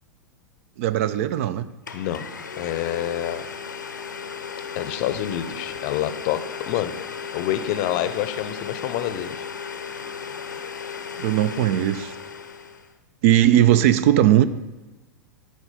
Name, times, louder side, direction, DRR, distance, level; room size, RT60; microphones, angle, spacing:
voice 1, 0.8-1.7 11.2-12.2 13.2-14.4, right 12 dB, 45° right, 15 dB, 0.4 m, -18 dB
Domestic sounds home sounds, 1.4-1.5 1.9-12.9, left 6 dB, 75° left, 0.7 m, -35 dB
voice 2, 2.6-3.5 4.7-7.0 7.3-9.5, left 12 dB, 40° left, 11 dB, 0.6 m, -27 dB
12.0 x 4.9 x 5.6 m, 1.1 s
figure-of-eight pair, 95°, 10 cm